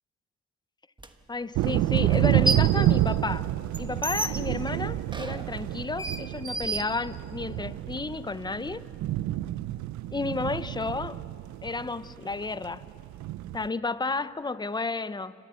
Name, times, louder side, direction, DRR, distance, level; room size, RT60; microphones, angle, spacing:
sound 1, 1.0-1.1 2.1-2.8 3.2-7.5, right 2 dB, 15° right, 1.2 m, -33 dB
voice 1, 1.3-3.5 3.8-8.8 10.1-11.2 11.6-12.8 13.5-15.3, left 3 dB, 15° left, 15 dB, 0.6 m, -32 dB
sound 2, 1.5-13.7, right 14 dB, 70° right, 0.5 m, -28 dB
29.0 x 13.0 x 8.5 m, 2.5 s
cardioid pair, 90°, 30 cm